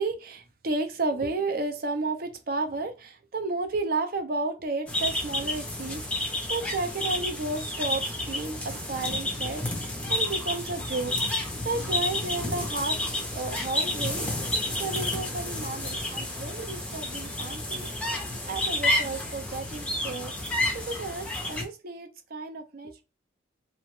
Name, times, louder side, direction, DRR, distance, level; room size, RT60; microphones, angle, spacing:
voice 1, 0.0-11.2 11.6-13.0 13.3-18.1 18.4-22.9, right 3 dB, 50° right, 0.5 m, -32 dB
sound 1, 4.9-21.6, left 1 dB, 5° left, 0.5 m, -30 dB
2.8 x 2.1 x 3.0 m
head